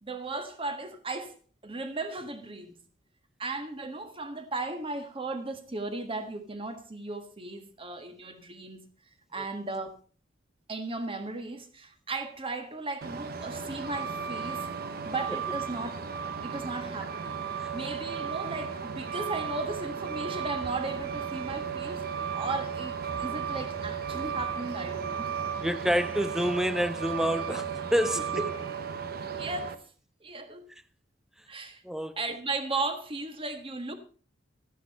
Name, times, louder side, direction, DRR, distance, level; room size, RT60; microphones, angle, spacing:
voice 1, 0.0-1.4 1.6-2.8 3.4-8.9 9.3-10.0 10.7-14.7 15.0-16.0 16.4-17.4 17.7-22.1 22.3-25.3 28.3-28.4 29.4-29.8 30.2-30.7 31.5-31.8 32.2-33.9, right 3 dB, 30° right, 1.5 m, -36 dB
Truck, 13.0-29.7, right 6 dB, 55° right, 0.9 m, -35 dB
voice 2, 25.6-28.3 31.8-32.2, equal, 5° right, 0.5 m, -28 dB
12.5 x 10.0 x 4.2 m
head